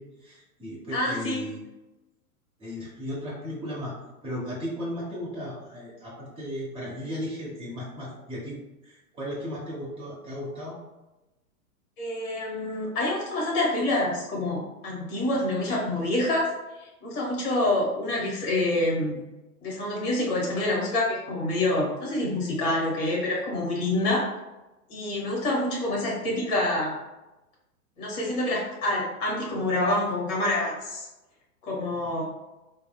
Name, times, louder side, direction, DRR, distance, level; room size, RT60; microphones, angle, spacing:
voice 1, 0.0-1.6 2.6-3.9 4.2-8.6 8.8-10.8 32.0-32.1, equal, 10° right, -7 dB, 0.8 m, -35 dB
voice 2, 0.9-1.4 12.0-16.5 16.8-19.2 19.6-24.3 24.9-27.0 28.0-31.1 31.6-32.2, left 1 dB, 35° left, -3 dB, 0.9 m, -27 dB
3.1 x 2.0 x 2.3 m, 1.0 s
figure-of-eight pair, 105°, 45 cm